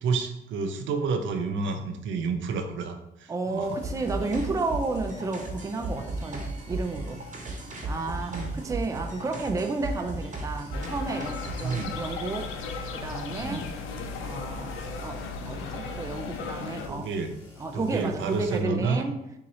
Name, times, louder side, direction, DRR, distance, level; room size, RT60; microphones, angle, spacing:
voice 1, 0.0-3.8 6.0-6.1 7.1-7.2 8.3-8.6 11.6-12.0 13.4-13.7 16.9-17.3 17.7-19.0, right 4 dB, 75° right, 6 dB, 0.6 m, -30 dB
voice 2, 3.3-7.2 7.9-12.5 12.9-13.7 14.2-17.1 17.6-19.1, right 3 dB, 15° right, 4 dB, 0.4 m, -32 dB
sound 1, 3.6-18.6, left 4 dB, 30° left, 1.5 m, -51 dB
sound 2, 3.8-11.8, right 2 dB, 40° right, 1.0 m, -36 dB
sound 3, 10.7-16.9, left 4 dB, 85° left, 0.5 m, -36 dB
3.7 x 2.8 x 4.2 m, 0.85 s
cardioid pair, 90°, 20 cm